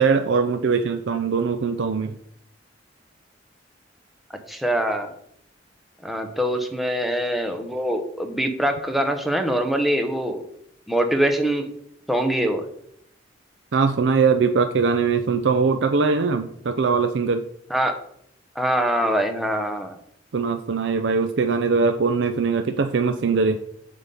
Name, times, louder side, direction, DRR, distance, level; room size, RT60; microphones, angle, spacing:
voice 1, 0.0-2.1 13.7-17.4 20.3-23.6, right 5 dB, 70° right, 8 dB, 0.5 m, -21 dB
voice 2, 4.3-5.1 6.0-10.4 10.9-11.7 12.1-12.7 17.7-18.0 18.6-19.9, right 1 dB, ahead, 5 dB, 0.8 m, -23 dB
7.9 x 3.8 x 6.8 m, 0.71 s
head